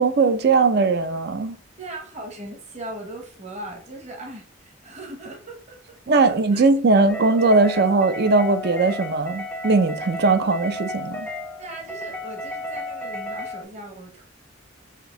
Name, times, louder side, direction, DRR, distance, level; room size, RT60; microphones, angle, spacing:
voice 1, 0.0-1.6 6.1-11.3, right 3 dB, 50° right, 0.5 m, -19 dB
voice 2, 1.8-6.7 7.0-7.1 11.6-14.2, right 1 dB, 35° right, 1.2 m, -39 dB
sound 1, 7.1-13.6, left 1 dB, 5° left, 0.4 m, -33 dB
5.1 x 2.7 x 3.8 m
head